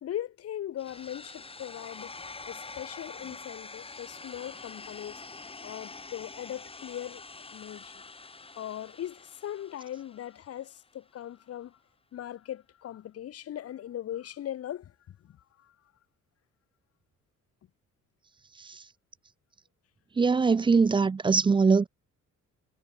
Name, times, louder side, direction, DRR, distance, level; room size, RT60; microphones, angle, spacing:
voice 1, 0.0-2.1 2.5-5.2 5.6-7.9 8.6-11.8 12.1-15.7, left 11 dB, 50° left, 0.8 m, -39 dB
sound 1, 0.8-10.8, left 3 dB, 20° left, 1.1 m, -46 dB
voice 2, 20.2-21.9, right 4 dB, 15° right, 0.3 m, -22 dB
cardioid pair, 90°, 30 cm